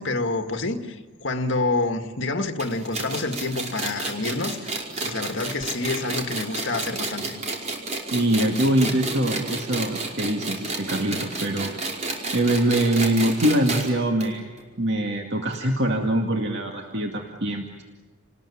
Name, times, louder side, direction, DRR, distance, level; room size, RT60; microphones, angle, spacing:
voice 1, 0.0-4.7 5.0-7.4, left 3 dB, 60° left, 6 dB, 2.0 m, -27 dB
sound 1, 2.6-13.9 14.2-14.3 14.6-14.7 15.5-15.6, right 3 dB, 35° right, 5.0 m, -30 dB
voice 2, 8.1-11.7 12.3-14.5 14.8-17.8, right 1 dB, 55° right, 2 dB, 2.2 m, -23 dB
30.0 x 20.0 x 9.9 m, 1.4 s
head